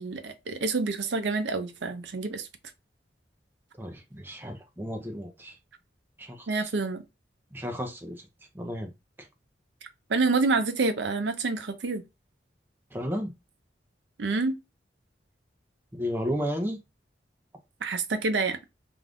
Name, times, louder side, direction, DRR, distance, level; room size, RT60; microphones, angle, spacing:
voice 1, 0.0-2.5 6.5-7.0 10.1-12.0 14.2-14.5 17.8-18.6, right 3 dB, 75° right, 0.5 m, -27 dB
voice 2, 3.8-5.6 6.2-6.7 7.5-8.3 8.5-8.9 9.2-9.3 12.9-13.3 15.9-16.8, equal, 10° right, 0.5 m, -33 dB
2.5 x 2.3 x 3.3 m
head